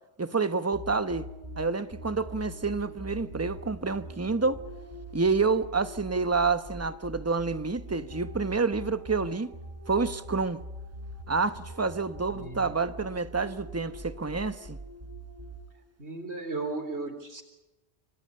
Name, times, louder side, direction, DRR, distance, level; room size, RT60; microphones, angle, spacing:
voice 1, 0.2-1.3 1.6-4.6 5.1-9.5 9.9-10.6 11.3-14.8, right 4 dB, 15° right, 0.9 m, -28 dB
sound 1, 0.7-15.9, equal, 40° right, 7.4 m, -43 dB
voice 2, 12.3-12.6 16.0-17.4, right 3 dB, 75° right, 4.3 m, -35 dB
27.5 x 26.0 x 5.6 m
omnidirectional pair, 1.1 m